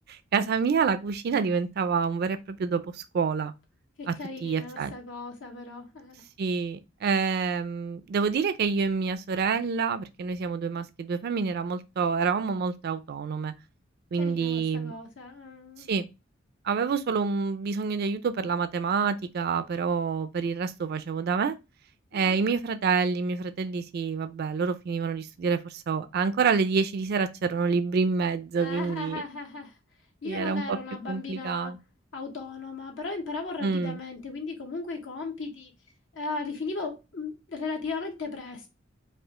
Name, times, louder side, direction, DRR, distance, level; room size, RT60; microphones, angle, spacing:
voice 1, 0.1-3.5 4.1-4.2 4.4-4.9 6.4-13.5 14.1-14.9 15.9-16.1 16.6-21.6 22.1-29.2 30.2-30.8 31.1-31.8 33.6-34.0, right 5 dB, 55° right, 0.4 m, -27 dB
voice 2, 4.0-6.1 14.2-15.9 22.1-22.4 28.6-29.7 30.2-31.7 32.1-35.7 36.1-38.7, left 3 dB, 70° left, 0.9 m, -36 dB
4.8 x 2.4 x 3.6 m
head